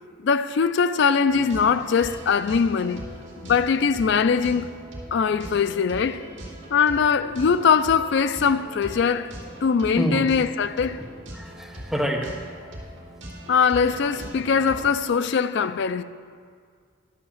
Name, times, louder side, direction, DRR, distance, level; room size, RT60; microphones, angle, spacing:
voice 1, 0.2-3.0 3.4-4.7 5.1-6.3 6.7-9.3 9.6-11.0 13.5-16.0, left 6 dB, 55° left, 0.3 m, -21 dB
sound 1, 1.3-15.1, right 1 dB, 60° right, 2.4 m, -40 dB
voice 2, 11.3-12.3 14.8-14.9, equal, ahead, 1.0 m, -27 dB
11.5 x 5.7 x 7.1 m
head